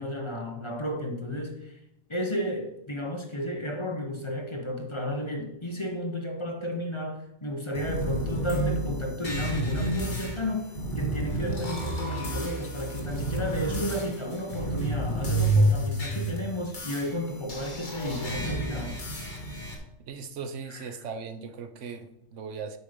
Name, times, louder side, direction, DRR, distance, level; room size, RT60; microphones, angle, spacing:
voice 1, 0.0-1.8 2.1-10.6 11.0-19.0 20.7-20.9, left 1 dB, 25° left, 1.1 m, -33 dB
sound 1, 7.7-19.7, right 1 dB, 40° left, 1.7 m, -30 dB
voice 2, 20.0-22.8, right 5 dB, 85° right, 1.1 m, -38 dB
8.1 x 5.6 x 5.1 m
omnidirectional pair, 1.2 m